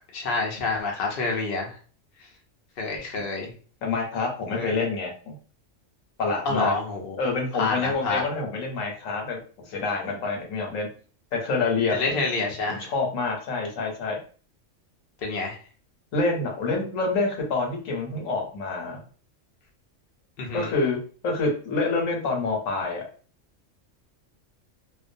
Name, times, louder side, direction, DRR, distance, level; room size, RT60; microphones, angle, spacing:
voice 1, 0.1-1.8 2.2-2.3 2.8-3.5 4.5-4.7 6.4-7.2 7.5-8.2 11.9-12.9 15.2-15.6 20.4-20.7, left 3 dB, 55° left, 0 dB, 0.7 m, -28 dB
voice 2, 3.8-5.4 6.2-6.7 7.2-10.9 11.3-12.2 12.7-14.2 16.1-19.0 20.5-23.0, left 3 dB, 80° left, 1 dB, 1.2 m, -27 dB
2.5 x 2.2 x 2.5 m, 0.40 s
omnidirectional pair, 1.3 m